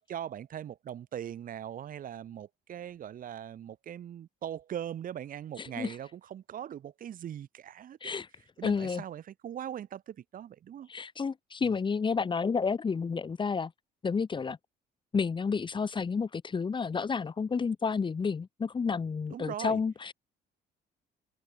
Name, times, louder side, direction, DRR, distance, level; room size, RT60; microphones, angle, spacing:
voice 1, 0.0-8.1 8.6-10.9 11.6-11.7 19.3-19.8, right 10 dB, 55° right, 5.3 m, -40 dB
voice 2, 5.6-5.9 8.0-8.3 8.6-9.0 10.9-13.7 14.0-14.6 15.1-20.1, left 5 dB, 30° left, 2.2 m, -30 dB
cardioid pair, 110°, 17 cm